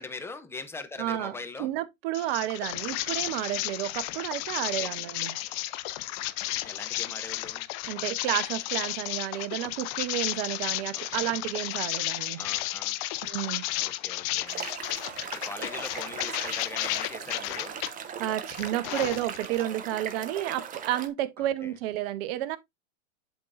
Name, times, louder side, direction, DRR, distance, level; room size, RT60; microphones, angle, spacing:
voice 1, 0.0-1.7 4.6-4.9 6.6-7.7 10.9-11.3 12.4-13.0 13.8-17.8 21.4-21.7, left 3 dB, 5° left, 0.7 m, -42 dB
voice 2, 1.0-5.4 7.9-12.4 13.2-13.6 18.2-22.6, right 13 dB, 45° right, 0.9 m, -31 dB
sound 1, 2.1-17.9 18.3-19.6, left 17 dB, 30° left, 0.5 m, -33 dB
sound 2, 14.5-21.1, right 8 dB, 20° right, 0.9 m, -39 dB
11.0 x 3.8 x 2.5 m
hypercardioid pair, 120°, 41 cm